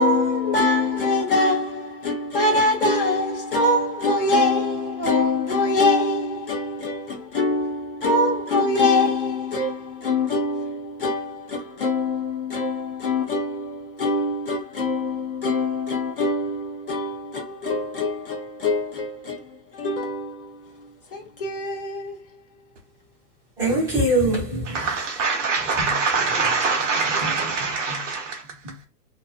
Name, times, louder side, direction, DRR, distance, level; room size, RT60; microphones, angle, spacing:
voice 1, 0.0-22.4, left 2 dB, 40° left, 0.5 m, -24 dB
voice 2, 23.6-24.9 25.8-26.0 27.1-27.4 27.9-28.0 28.6-28.7, right 1 dB, 5° right, 0.6 m, -24 dB
voice 3, 24.7-28.4, right 4 dB, 50° right, 0.8 m, -24 dB
2.5 x 2.1 x 2.4 m
hypercardioid pair, 165°, 47 cm